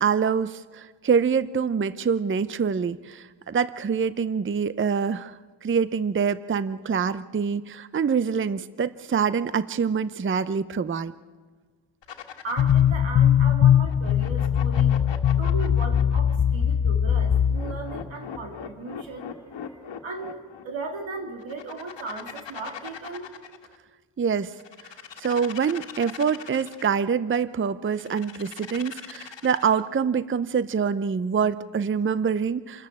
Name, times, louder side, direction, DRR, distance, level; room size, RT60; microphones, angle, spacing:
voice 1, 0.0-11.1 24.2-24.5 25.2-32.9, right 6 dB, 25° right, 16 dB, 0.6 m, -25 dB
sound 1, 12.0-12.9 13.9-16.4 17.2-20.6 21.4-23.8 24.5-27.0 27.9-29.9, left 8 dB, 65° left, 1.8 m, -40 dB
voice 2, 12.4-14.9 15.4-23.3, right 3 dB, 80° right, 4 dB, 3.6 m, -37 dB
sound 2, 12.6-18.1, left 9 dB, 45° left, 0.7 m, -21 dB
27.0 x 13.5 x 8.5 m, 1.5 s
cardioid pair, 85°, 46 cm